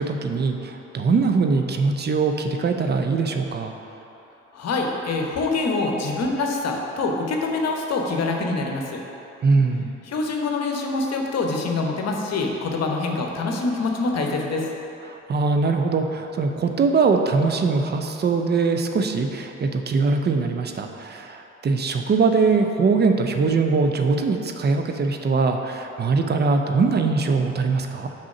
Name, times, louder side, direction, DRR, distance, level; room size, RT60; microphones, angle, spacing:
voice 1, 0.0-3.7 9.4-9.9 15.1-28.1, right 4 dB, 25° right, 5 dB, 0.6 m, -22 dB
voice 2, 4.5-9.0 10.1-14.7, left 3 dB, 40° left, 1 dB, 1.0 m, -25 dB
6.2 x 4.2 x 6.0 m, 2.9 s
figure-of-eight pair, 45°, 38 cm